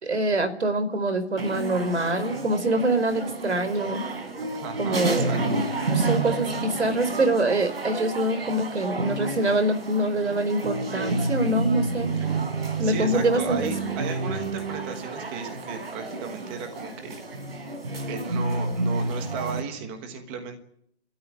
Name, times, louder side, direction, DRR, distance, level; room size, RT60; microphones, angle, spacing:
voice 1, 0.0-4.0 4.8-5.4 5.9-12.1 12.8-13.7, right 1 dB, 85° right, 10 dB, 4.7 m, -25 dB
sound 1, 1.4-19.6, right 2 dB, 60° right, 4.5 m, -30 dB
voice 2, 4.6-5.6 12.2-12.3 12.8-17.1 17.5-17.6 18.1-20.6, right 5 dB, 10° right, 6 dB, 1.3 m, -35 dB
29.5 x 13.5 x 9.1 m, 0.70 s
hypercardioid pair, 170°, 33 cm